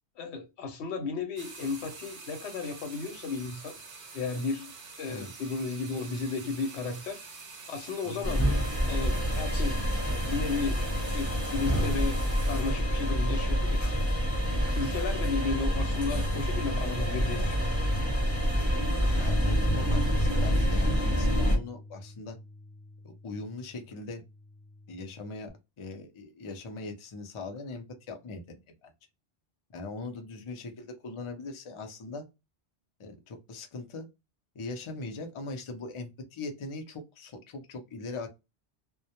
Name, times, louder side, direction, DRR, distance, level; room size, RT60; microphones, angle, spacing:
voice 1, 0.2-3.8 4.1-7.2 7.7-8.5 8.9-9.8 10.1-10.8 11.1-13.9 14.7-17.7, left 4 dB, 80° left, 0.9 m, -34 dB
sound 1, 1.4-12.6, right 4 dB, 50° right, 0.6 m, -46 dB
sound 2, 8.2-21.6, equal, 15° left, 0.8 m, -27 dB
voice 2, 19.2-22.4 23.0-24.2 24.9-28.9 29.7-32.3 33.0-34.1 34.5-38.3, left 3 dB, 40° left, 0.4 m, -40 dB
Bass guitar, 19.3-25.5, left 2 dB, 20° right, 0.8 m, -44 dB
2.1 x 2.0 x 2.8 m
omnidirectional pair, 1.1 m